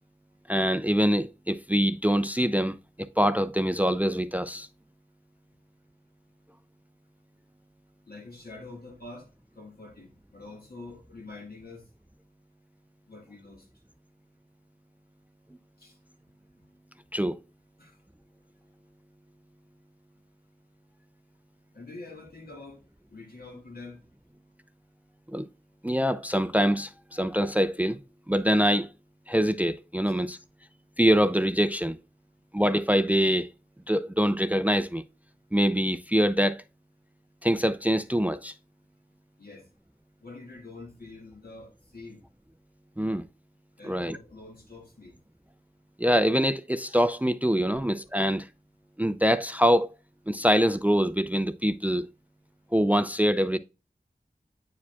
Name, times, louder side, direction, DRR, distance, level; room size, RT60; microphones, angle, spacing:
voice 1, 0.5-4.7 17.1-17.4 25.3-25.5 25.8-28.0 28.3-28.9 29.3-30.4 31.0-32.0 32.5-33.5 33.9-35.0 35.5-36.6 37.4-38.5 43.0-43.2 43.8-44.2 46.0-48.5 49.0-49.9 50.3-52.1 52.7-53.6, equal, 10° right, 0.4 m, -24 dB
voice 2, 8.1-9.3 9.5-11.8 13.1-13.7 15.8-16.0 17.8-18.0 21.7-22.8 23.1-24.0 30.1-30.2 39.4-39.7 40.2-42.2 43.8-45.1, left 3 dB, 75° left, 2.1 m, -45 dB
8.3 x 4.9 x 2.3 m
wide cardioid pair, 55°, 16 cm